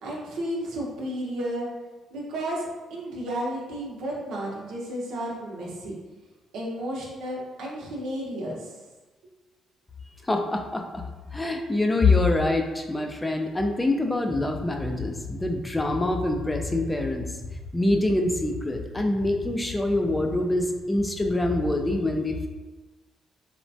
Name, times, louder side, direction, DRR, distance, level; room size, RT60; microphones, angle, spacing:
voice 1, 0.0-1.7 2.1-5.9 6.5-8.7, right 1 dB, 85° right, -3 dB, 0.7 m, -32 dB
voice 2, 10.2-11.0 11.3-17.2 17.7-22.5, left 2 dB, 15° left, 3 dB, 0.3 m, -25 dB
3.1 x 2.1 x 2.6 m, 1.2 s
cardioid pair, 90°, 0 cm